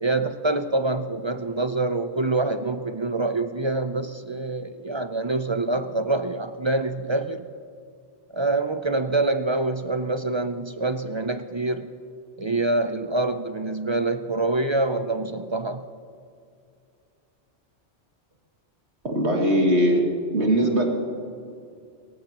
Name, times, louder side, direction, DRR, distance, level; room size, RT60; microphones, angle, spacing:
voice 1, 0.0-7.4 8.3-11.9 12.4-15.8, right 2 dB, 40° right, 9 dB, 0.4 m, -26 dB
voice 2, 19.0-20.0 20.3-20.9, equal, 75° right, 0 dB, 2.6 m, -20 dB
28.5 x 14.5 x 2.9 m, 2.4 s
omnidirectional pair, 1.2 m